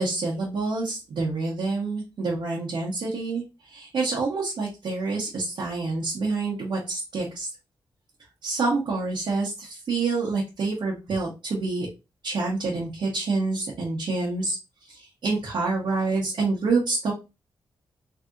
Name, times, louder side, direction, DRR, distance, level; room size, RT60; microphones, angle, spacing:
voice 1, 0.0-7.5 8.4-11.9 12.2-14.6 14.9-17.1, right 3 dB, 75° right, -4 dB, 1.0 m, -27 dB
3.3 x 2.8 x 2.5 m, 0.27 s
cardioid pair, 90°, 8 cm